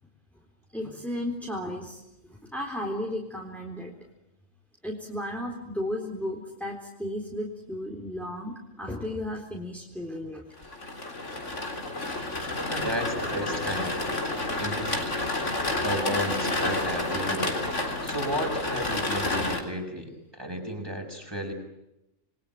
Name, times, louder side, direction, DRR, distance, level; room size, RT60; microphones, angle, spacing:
voice 1, 0.7-2.0 2.3-3.9 4.8-10.8, left 1 dB, ahead, -1 dB, 4.0 m, -34 dB
sound 1, 10.6-19.6, left 2 dB, 70° left, 4.2 m, -30 dB
voice 2, 12.7-14.2 14.6-15.0 15.8-17.6 18.0-21.5, equal, 20° right, 3 dB, 6.4 m, -33 dB
28.5 x 22.5 x 9.4 m, 0.90 s
omnidirectional pair, 1.3 m